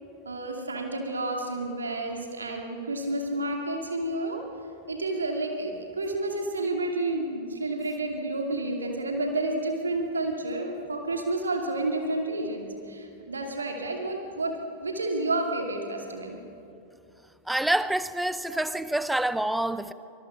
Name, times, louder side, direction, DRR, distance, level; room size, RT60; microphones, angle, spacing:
voice 1, 0.2-4.5 4.9-16.4 18.5-18.6, right 2 dB, 75° right, 2 dB, 2.5 m, -30 dB
voice 2, 17.5-19.9, right 1 dB, 5° right, 14 dB, 0.8 m, -27 dB
25.0 x 21.0 x 6.3 m, 2.6 s
figure-of-eight pair, 90°, 0 cm